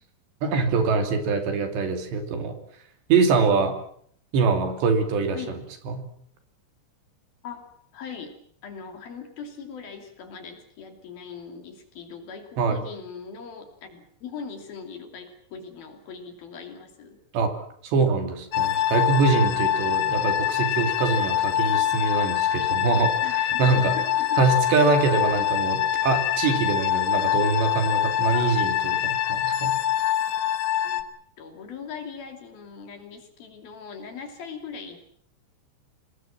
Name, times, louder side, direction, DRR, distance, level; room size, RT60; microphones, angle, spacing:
voice 1, 0.4-2.6 3.1-3.7 4.3-5.4 5.9-6.0 12.6-12.8 17.3-17.5 17.8-23.9 24.4-29.8, right 4 dB, 65° right, 7 dB, 4.7 m, -24 dB
voice 2, 7.4-8.3 8.6-17.2 20.8-20.9 23.2-24.4 28.3-28.6 30.8-31.0 31.4-35.0, left 6 dB, 55° left, 6 dB, 4.3 m, -40 dB
sound 1, 18.5-31.0, left 11 dB, 80° left, 3.8 m, -24 dB
26.5 x 20.5 x 7.5 m, 0.64 s
omnidirectional pair, 5.6 m